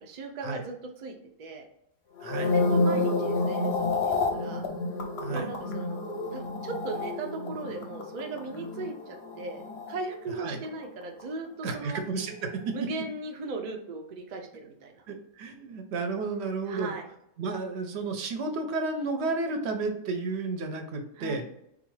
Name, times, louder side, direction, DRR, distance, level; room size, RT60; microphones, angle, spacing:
voice 1, 0.0-1.6 2.5-4.7 5.3-9.6 9.9-12.0 12.7-15.0 16.7-17.1 21.2-21.4, right 3 dB, 90° right, 3 dB, 0.3 m, -38 dB
sound 1, 2.2-10.6 10.8-11.2, left 3 dB, 60° left, 0.7 m, -30 dB
voice 2, 2.2-2.5 5.2-5.5 10.4-10.6 11.6-12.8 15.1-16.9 17.4-21.4, right 3 dB, 60° right, 5 dB, 0.7 m, -32 dB
4.0 x 2.4 x 3.1 m, 0.77 s
omnidirectional pair, 1.5 m